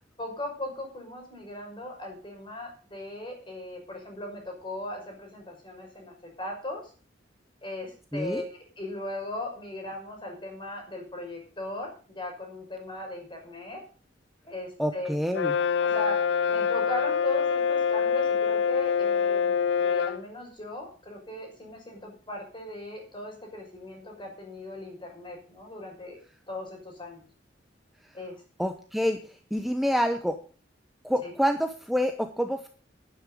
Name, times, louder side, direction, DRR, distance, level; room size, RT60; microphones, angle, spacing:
voice 1, 0.2-6.8 7.6-13.8 14.4-15.1 15.8-16.2 16.5-26.2 26.5-27.3 28.1-28.3 31.2-31.3, left 1 dB, 25° left, 2 dB, 6.0 m, -38 dB
voice 2, 8.1-8.4 14.8-15.5 28.6-30.4 31.0-32.7, equal, ahead, 6 dB, 0.9 m, -27 dB
Brass instrument, 15.3-20.2, left 6 dB, 65° left, 0.5 m, -25 dB
11.0 x 11.0 x 5.3 m, 0.39 s
head